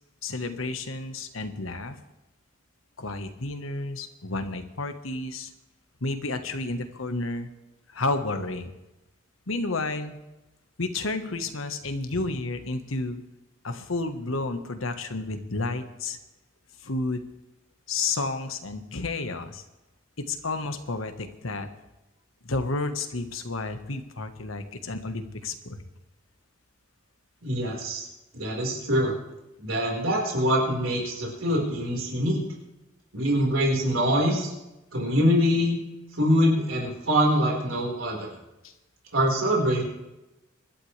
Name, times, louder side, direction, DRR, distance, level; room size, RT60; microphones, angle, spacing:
voice 1, 0.2-2.0 3.0-5.5 6.0-7.5 7.9-8.7 9.5-10.2 10.8-13.2 13.6-16.2 16.8-17.2 17.9-19.6 20.2-21.7 22.4-25.8 38.6-38.7, left 3 dB, 85° left, 8 dB, 1.3 m, -31 dB
voice 2, 27.4-28.0 28.3-29.1 29.6-32.4 33.1-34.5 34.9-35.8 36.1-38.3 39.1-39.8, equal, 90° right, -1 dB, 4.5 m, -24 dB
25.0 x 11.5 x 3.3 m, 0.99 s
head